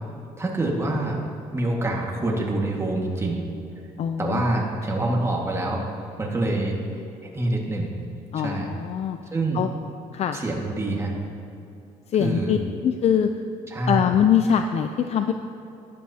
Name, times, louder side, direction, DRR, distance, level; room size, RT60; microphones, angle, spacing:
voice 1, 0.4-1.2 1.5-3.4 4.2-5.9 6.2-6.8 7.2-7.9 8.3-8.7 9.3-9.6 10.3-11.1 12.2-12.6 13.7-14.0, right 2 dB, 20° right, -1 dB, 1.7 m, -26 dB
voice 2, 4.0-4.4 8.3-9.2 9.5-9.7 10.1-10.4 12.1-12.6 12.8-13.3 13.9-15.3, left 8 dB, 50° left, 7 dB, 0.5 m, -22 dB
14.0 x 10.5 x 2.8 m, 2.8 s
cardioid pair, 95°, 14 cm